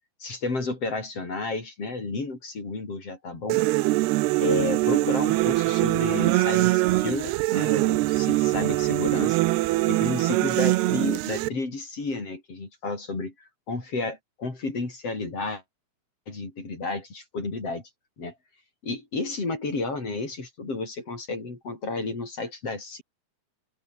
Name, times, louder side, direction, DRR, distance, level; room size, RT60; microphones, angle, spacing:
voice 1, 0.2-3.6 4.4-9.4 9.9-15.6 16.3-17.8 18.2-18.3 18.8-23.0, left 3 dB, 35° left, 6.4 m, -31 dB
sound 1, 3.5-11.5, right 19 dB, 85° right, 2.7 m, -23 dB
open air
omnidirectional pair, 4.7 m